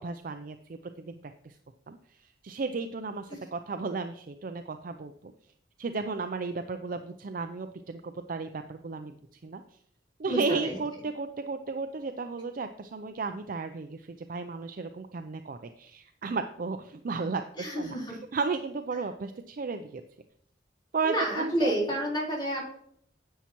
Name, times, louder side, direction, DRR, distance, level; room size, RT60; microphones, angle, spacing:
voice 1, 0.0-1.5 1.9-2.0 2.4-5.1 5.8-9.2 9.4-9.6 10.2-20.0 20.9-21.7, right 4 dB, 50° right, 8 dB, 0.4 m, -34 dB
voice 2, 10.3-10.8 17.6-18.2 21.0-22.6, right 1 dB, 25° left, -4 dB, 3.8 m, -29 dB
10.0 x 8.2 x 3.0 m, 0.68 s
head